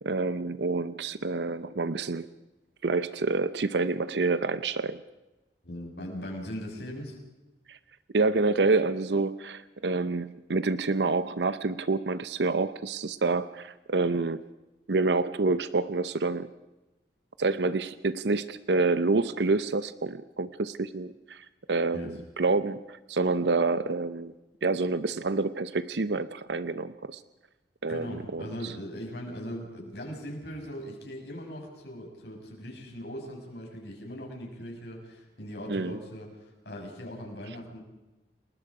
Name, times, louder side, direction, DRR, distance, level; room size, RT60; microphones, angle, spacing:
voice 1, 0.0-2.3 2.8-5.0 7.7-7.8 8.1-14.4 14.9-16.5 17.4-24.3 24.6-27.2 27.8-28.7 35.7-36.0, right 3 dB, 80° right, 14 dB, 0.7 m, -28 dB
voice 2, 5.6-7.2 21.9-22.1 27.9-37.8, equal, 70° left, 1 dB, 6.8 m, -40 dB
30.0 x 20.5 x 4.9 m, 1.0 s
head